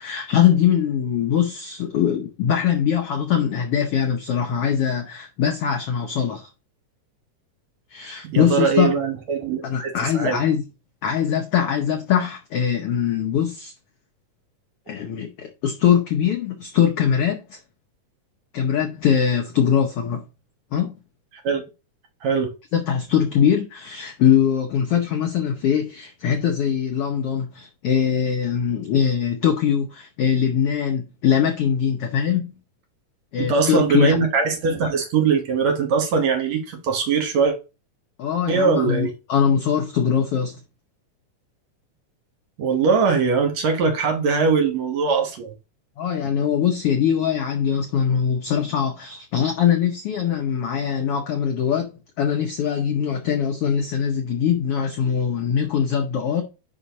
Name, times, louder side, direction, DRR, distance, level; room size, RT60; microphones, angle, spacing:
voice 1, 0.0-6.5 7.9-8.9 9.6-10.6 11.0-13.7 14.9-17.6 18.5-20.2 20.7-21.0 22.7-32.5 33.3-34.2 38.2-40.6 46.0-51.9 52.2-56.4, left 8 dB, 80° left, 1.3 m, -22 dB
voice 2, 8.2-10.4 21.4-21.6 22.2-22.5 33.4-37.6 38.5-39.1 42.6-45.5, right 5 dB, 65° right, 2.3 m, -21 dB
5.5 x 4.9 x 4.0 m
omnidirectional pair, 3.7 m